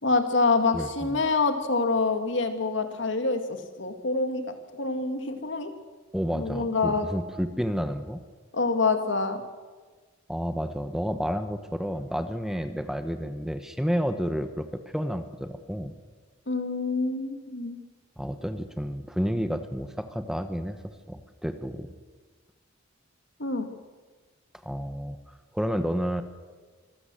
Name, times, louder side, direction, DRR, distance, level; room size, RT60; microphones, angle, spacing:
voice 1, 0.0-4.4 4.8-5.7 6.3-7.1 8.5-9.4 16.5-17.8 23.4-23.7, left 3 dB, 65° left, 7 dB, 2.2 m, -26 dB
voice 2, 0.7-1.2 6.1-8.2 10.3-14.7 14.9-15.9 18.2-20.8 21.1-21.9 24.6-25.2 25.5-26.2, equal, 5° right, 9 dB, 1.1 m, -30 dB
25.0 x 15.0 x 7.6 m, 1.4 s
head